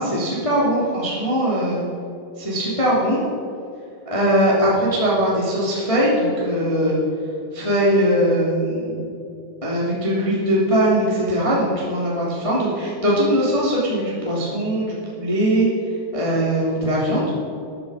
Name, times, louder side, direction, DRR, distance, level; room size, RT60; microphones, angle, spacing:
voice 1, 0.0-1.8 2.4-3.2 4.1-7.0 7.5-9.0 9.6-15.7 16.1-17.3, equal, 10° left, -6 dB, 2.2 m, -20 dB
14.0 x 10.0 x 5.1 m, 2.7 s
omnidirectional pair, 4.6 m